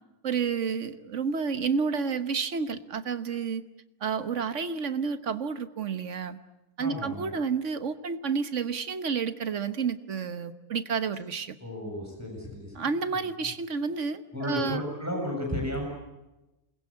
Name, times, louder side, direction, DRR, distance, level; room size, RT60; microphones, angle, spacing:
voice 1, 0.2-3.6 4.0-6.4 6.8-11.5 12.7-14.8, right 5 dB, 55° right, 11 dB, 1.5 m, -30 dB
voice 2, 6.8-7.3 11.6-12.7 14.3-15.8, left 1 dB, 10° right, 1 dB, 7.1 m, -33 dB
28.0 x 21.0 x 8.7 m, 1.0 s
omnidirectional pair, 1.6 m